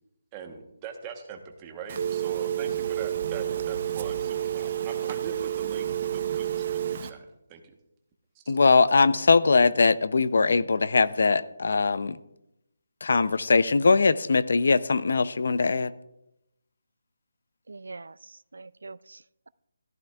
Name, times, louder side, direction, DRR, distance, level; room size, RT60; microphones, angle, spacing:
voice 1, 0.3-7.7 8.4-8.5, right 6 dB, 15° right, 4 dB, 1.0 m, -42 dB
Telephone, 1.9-7.1, right 10 dB, 35° right, 0.6 m, -29 dB
voice 2, 8.5-12.2 13.0-15.9, left 4 dB, 60° left, 16 dB, 0.5 m, -21 dB
voice 3, 17.7-19.5, right 3 dB, 85° right, 19 dB, 0.3 m, -44 dB
14.5 x 12.5 x 2.3 m, 0.85 s
hypercardioid pair, 170°, 0 cm